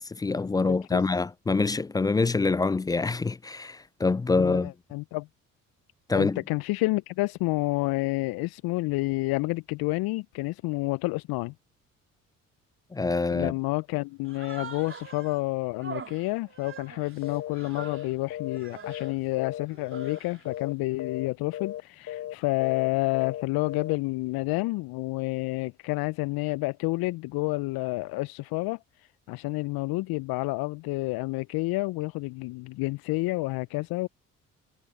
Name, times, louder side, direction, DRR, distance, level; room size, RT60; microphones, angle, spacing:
voice 1, 0.0-4.7 6.1-6.4 12.9-13.5, left 3 dB, 10° left, 0.3 m, -25 dB
voice 2, 4.4-5.3 6.1-11.5 13.3-34.1, left 22 dB, 60° left, 1.0 m, -29 dB
Human voice, 14.2-15.4 15.8-18.1 18.5-19.1 19.7-20.5, right 5 dB, 30° right, 3.5 m, -44 dB
sound 1, 17.2-17.5 17.8-18.0 18.3-19.7 19.9-20.2 20.4-20.7 21.0-21.3 21.5-21.8 22.1-22.3 22.6-22.9 23.1-23.4 23.7-24.0, left 12 dB, 40° left, 0.8 m, -36 dB
figure-of-eight pair, 50°, 40 cm